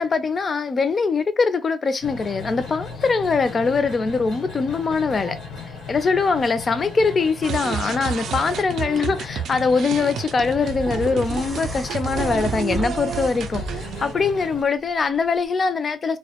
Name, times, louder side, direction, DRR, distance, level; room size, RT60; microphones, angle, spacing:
voice 1, 0.0-5.4 5.9-16.2, left 4 dB, 40° left, 0.4 m, -22 dB
sound 1, 2.0-14.6, left 4 dB, 90° left, 1.0 m, -36 dB
sound 2, 7.4-14.1, right 7 dB, 75° right, 0.4 m, -30 dB
sound 3, 10.4-14.1 15.4-15.5, right 2 dB, 25° right, 0.6 m, -34 dB
2.1 x 2.1 x 2.8 m
cardioid pair, 90°, 0 cm